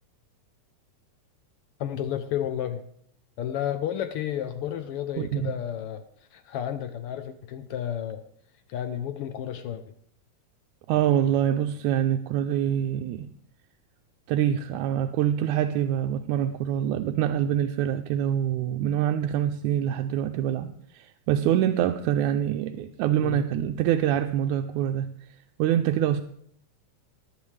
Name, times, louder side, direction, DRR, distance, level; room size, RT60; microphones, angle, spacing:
voice 1, 1.8-2.8 3.4-6.0 6.3-8.2 8.7-9.8 23.2-23.4, left 10 dB, 80° left, 1.3 m, -31 dB
voice 2, 5.2-5.5 10.9-13.3 14.3-20.7 20.9-25.1 25.6-26.2, right 10 dB, 90° right, 2.0 m, -25 dB
19.0 x 9.2 x 3.3 m
omnidirectional pair, 3.4 m